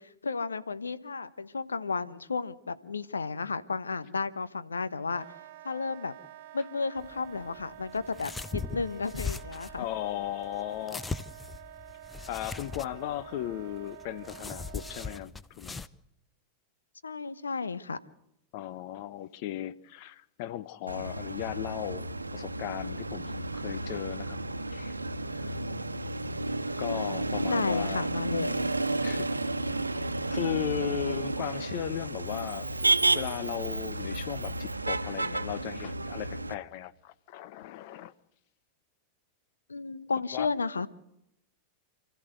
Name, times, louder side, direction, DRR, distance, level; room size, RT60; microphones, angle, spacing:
voice 1, 0.0-5.2 5.6-6.1 6.5-9.9 17.0-18.0 27.5-28.7 39.7-40.9, left 4 dB, 75° left, 1.0 m, -33 dB
Wind instrument woodwind instrument, 5.1-15.2, right 12 dB, 55° right, 1.0 m, -49 dB
sound 1, 7.0-15.9, left 4 dB, 10° left, 0.8 m, -40 dB
voice 2, 9.8-11.1 12.3-15.8 18.5-24.4 24.7-25.0 25.3-25.6 26.8-28.1 29.0-29.4 30.0-32.7 33.1-38.1 40.3-40.5, left 13 dB, 45° left, 0.8 m, -36 dB
Motor vehicle (road), 20.9-36.5, right 2 dB, 80° right, 1.0 m, -32 dB
29.0 x 14.0 x 8.1 m
figure-of-eight pair, 90°, 0 cm